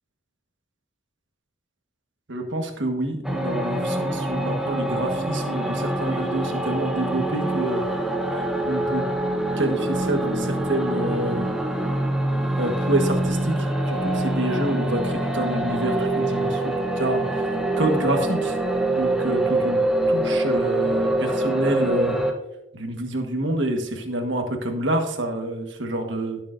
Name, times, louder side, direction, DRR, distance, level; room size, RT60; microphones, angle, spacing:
voice 1, 2.3-7.8 8.3-9.0 9.6-11.5 12.6-13.6 13.9-17.4 17.8-18.5 19.0-19.8 20.1-22.2 22.7-26.4, right 1 dB, 60° right, 4 dB, 1.4 m, -27 dB
sound 1, 3.2-22.3, right 1 dB, ahead, 0.8 m, -25 dB
17.5 x 6.8 x 2.6 m, 0.96 s
head